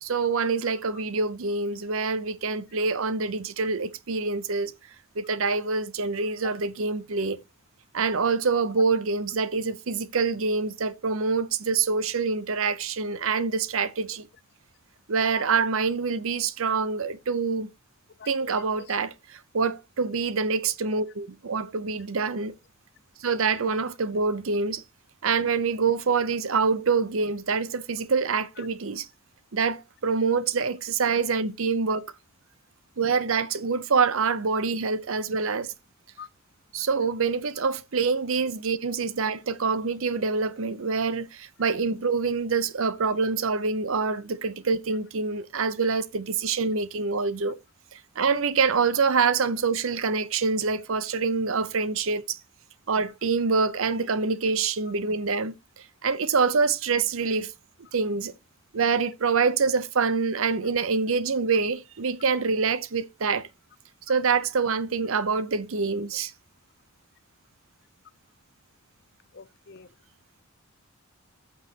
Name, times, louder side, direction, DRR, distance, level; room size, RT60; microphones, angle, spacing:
voice 1, 0.0-4.7 5.2-7.4 7.9-14.3 15.1-17.7 18.3-22.5 23.2-24.8 25.2-29.1 29.5-32.0 33.0-35.7 36.7-47.5 47.9-52.4 52.9-55.5 56.0-57.5 57.9-58.3 58.7-63.5 64.1-66.3, right 4 dB, 70° right, 0.7 m, -26 dB
voice 2, 0.6-1.0 6.4-6.6 8.8-8.9 18.2-19.0 20.9-21.0 28.3-28.7 36.2-36.3 69.3-69.9, left 6 dB, 50° left, 0.5 m, -44 dB
14.0 x 6.3 x 2.9 m
head